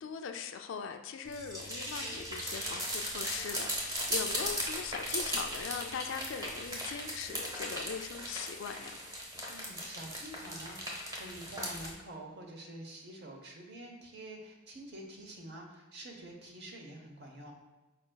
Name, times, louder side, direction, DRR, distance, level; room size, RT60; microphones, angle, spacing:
voice 1, 0.0-9.0, left 6 dB, 60° left, 7 dB, 0.3 m, -40 dB
sound 1, 1.2-11.9, equal, 15° right, 0.8 m, -38 dB
voice 2, 9.5-17.5, right 1 dB, 55° right, 1 dB, 0.8 m, -47 dB
5.0 x 4.3 x 2.2 m, 1.1 s
head